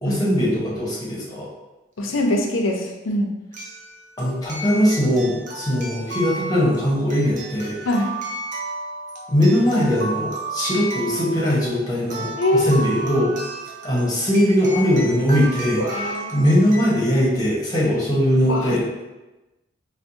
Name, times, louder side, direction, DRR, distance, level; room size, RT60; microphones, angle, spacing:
voice 1, 0.0-1.5 4.2-7.8 9.3-13.3 13.8-16.0 16.3-19.0, equal, 20° left, -6 dB, 0.9 m, -20 dB
voice 2, 2.0-3.3 7.8-8.1 12.4-12.9 15.8-16.4 18.5-18.8, left 1 dB, 85° left, 2 dB, 0.5 m, -23 dB
sound 1, 2.1-2.2 3.5-16.9, right 2 dB, 40° right, 0.5 m, -33 dB
4.3 x 2.1 x 2.6 m, 1.1 s
head